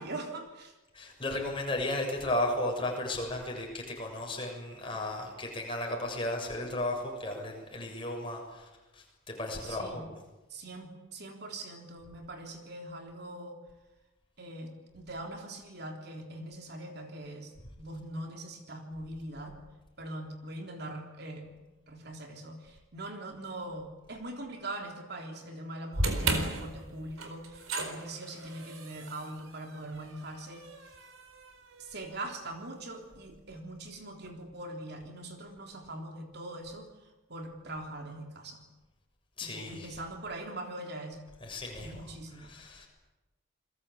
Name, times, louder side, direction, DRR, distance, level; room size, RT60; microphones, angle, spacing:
voice 1, 0.0-0.8 9.6-10.1 10.5-13.6 14.4-19.6 20.0-21.6 21.9-30.7 31.8-36.9 37.3-38.6 39.4-41.2 41.8-42.6, right 1 dB, 50° right, 3 dB, 3.5 m, -42 dB
voice 2, 0.9-10.1 39.4-39.9 41.4-42.0 42.4-42.9, left 1 dB, 25° left, 1 dB, 6.9 m, -34 dB
sound 1, 25.9-32.2, right 2 dB, 85° right, 4.3 m, -36 dB
29.0 x 21.5 x 8.5 m, 1.1 s
head